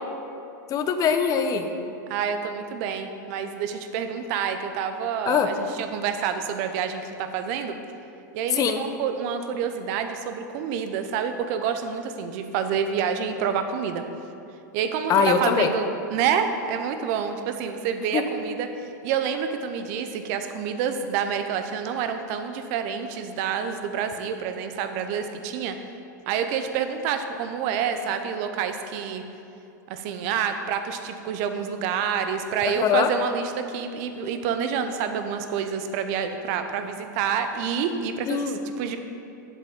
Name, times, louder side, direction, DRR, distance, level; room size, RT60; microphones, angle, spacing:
voice 1, 0.7-1.7 5.3-5.5 8.5-8.8 15.1-15.7 18.1-18.2 32.6-33.1 38.3-38.6, left 7 dB, 35° left, 7 dB, 0.7 m, -22 dB
voice 2, 2.1-7.8 8.3-14.0 14.7-25.8 26.3-29.2 29.9-39.0, right 7 dB, 55° right, 8 dB, 0.7 m, -28 dB
7.7 x 7.5 x 3.7 m, 2.7 s
hypercardioid pair, 100°, 10 cm